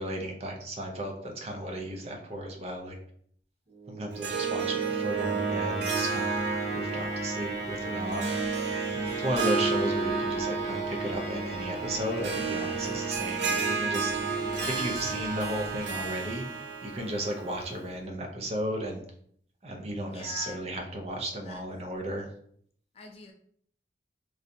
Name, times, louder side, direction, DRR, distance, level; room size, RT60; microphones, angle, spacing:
voice 1, 0.0-3.0 3.9-6.4 6.7-8.3 8.9-14.1 14.7-19.0 19.6-22.3, right 1 dB, 35° right, 2 dB, 0.5 m, -34 dB
sound 1, 3.7-16.7, right 3 dB, 55° right, 1.2 m, -35 dB
Harp, 4.1-17.9, right 5 dB, 85° right, 0.5 m, -33 dB
voice 2, 14.4-15.0 20.0-20.6 21.4-21.6 23.0-23.3, left 4 dB, 35° left, 3 dB, 0.4 m, -44 dB
3.1 x 2.6 x 2.6 m, 0.63 s
head